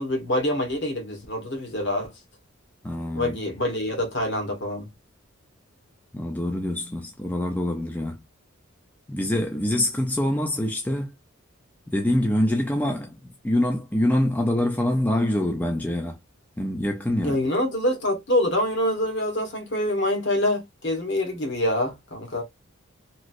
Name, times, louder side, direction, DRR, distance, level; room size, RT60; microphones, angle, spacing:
voice 1, 0.0-2.1 3.1-4.9 17.2-22.4, left 1 dB, 55° left, 1.2 m, -25 dB
voice 2, 2.8-3.4 6.1-8.2 9.1-11.1 11.9-16.2 16.6-17.4, left 1 dB, 10° left, 0.4 m, -25 dB
3.0 x 2.5 x 2.5 m
head